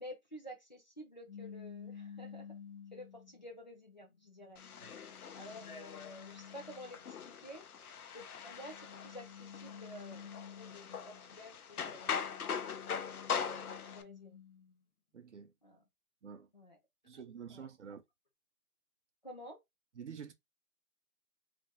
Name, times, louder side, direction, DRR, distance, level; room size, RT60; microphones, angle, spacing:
voice 1, 0.0-2.5 2.9-4.6 5.4-7.6 8.1-12.3 13.5-14.4 15.6-15.8 16.5-16.8 17.1-17.2 17.5-17.7 19.2-19.6, equal, 30° left, 0.5 m, -51 dB
sound 1, 1.3-3.5 4.1-7.2 8.3-11.3 11.8-14.7, left 7 dB, 60° left, 1.0 m, -52 dB
sound 2, 4.6-14.0, left 7 dB, 85° left, 0.7 m, -42 dB
voice 2, 15.1-15.5 16.2-16.5 17.0-18.0 19.9-20.3, right 7 dB, 55° right, 0.5 m, -48 dB
3.2 x 2.0 x 3.4 m
hypercardioid pair, 170°, 43 cm